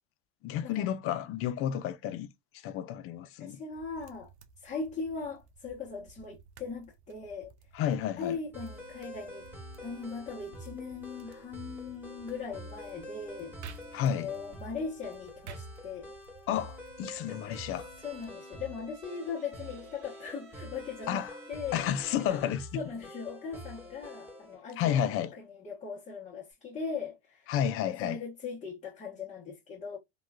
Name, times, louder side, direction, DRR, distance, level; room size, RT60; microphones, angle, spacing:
voice 1, 0.4-2.3 2.5-3.6 7.7-8.4 13.9-14.3 16.5-17.9 21.1-21.3 21.7-22.7 24.8-25.3 27.5-28.2, left 10 dB, 45° left, 0.5 m, -31 dB
voice 2, 3.4-4.3 4.6-7.5 8.2-9.5 9.8-16.1 18.0-21.8 22.3-22.4 22.7-27.5 27.9-30.0, left 5 dB, 20° left, 0.9 m, -39 dB
sound 1, 3.7-18.4, right 6 dB, 85° right, 0.5 m, -55 dB
sound 2, 8.5-24.6, equal, 5° right, 1.4 m, -47 dB
Bowed string instrument, 17.5-22.1, right 3 dB, 60° right, 1.0 m, -58 dB
2.9 x 2.3 x 2.2 m
hypercardioid pair, 85°, 32 cm